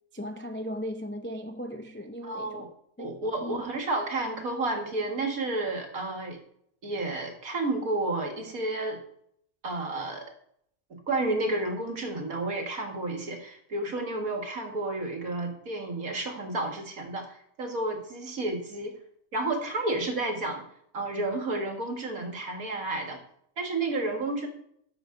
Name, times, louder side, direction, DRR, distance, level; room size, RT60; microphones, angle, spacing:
voice 1, 0.1-2.7 3.0-3.7, equal, 20° left, 0.3 m, -37 dB
voice 2, 2.2-2.7 3.0-6.4 6.8-9.0 9.6-10.3 10.9-19.0 19.3-20.6 20.9-23.2 23.6-24.5, right 2 dB, 70° right, 2.3 m, -31 dB
13.5 x 6.7 x 3.8 m
omnidirectional pair, 1.6 m